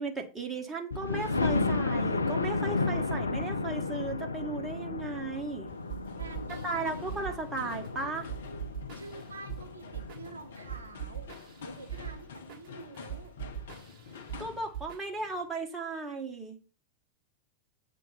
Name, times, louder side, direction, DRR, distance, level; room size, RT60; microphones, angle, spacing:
voice 1, 0.0-5.7 6.6-8.3 14.4-16.6, right 3 dB, 15° right, 2 dB, 1.5 m, -36 dB
Thunder, 0.9-10.6 11.2-11.3 11.7-11.8 12.1-12.2, left 3 dB, 75° left, 0.4 m, -33 dB
sound 1, 5.7-14.7, left 6 dB, 60° left, 0.8 m, -48 dB
sound 2, 5.9-15.4, right 9 dB, 40° right, 1.3 m, -43 dB
voice 2, 6.2-7.4 8.9-11.3 11.6-13.3, right 4 dB, 75° right, 5 dB, 0.8 m, -48 dB
7.6 x 3.0 x 5.6 m, 0.35 s
figure-of-eight pair, 90°, 0 cm